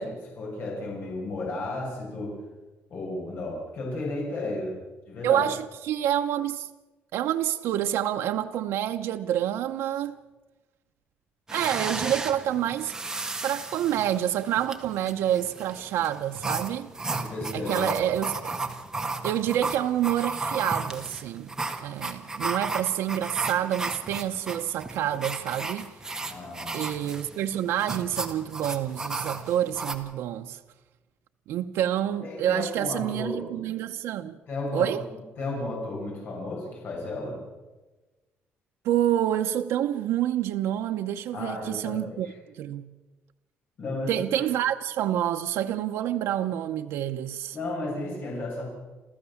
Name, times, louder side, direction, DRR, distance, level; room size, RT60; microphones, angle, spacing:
voice 1, 0.0-2.3 2.9-4.8 5.1-5.4 17.1-18.0 18.5-18.6 26.3-26.8 32.2-33.5 34.5-34.9 35.4-37.4 41.3-42.3 43.8-44.5 47.5-48.7, left 2 dB, 50° left, 7.1 m, -33 dB
voice 2, 5.2-6.7 7.1-10.2 11.5-12.9 13.4-16.9 17.5-18.6 19.2-21.5 21.8-26.3 26.7-30.6 31.5-34.4 34.7-35.0 38.8-42.9 44.1-47.6, right 11 dB, 85° right, 0.8 m, -28 dB
sound 1, 11.5-29.9, right 3 dB, 10° right, 1.6 m, -34 dB
29.0 x 13.5 x 7.2 m
cardioid pair, 170°, 4 cm